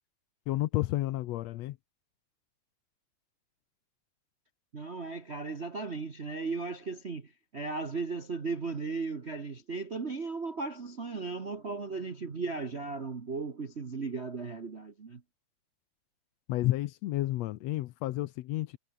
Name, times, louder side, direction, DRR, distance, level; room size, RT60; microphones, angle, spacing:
voice 1, 0.5-1.8 16.5-18.8, left 16 dB, 75° left, 1.8 m, -31 dB
voice 2, 4.7-15.2, right 4 dB, 40° right, 0.9 m, -36 dB
omnidirectional pair, 3.3 m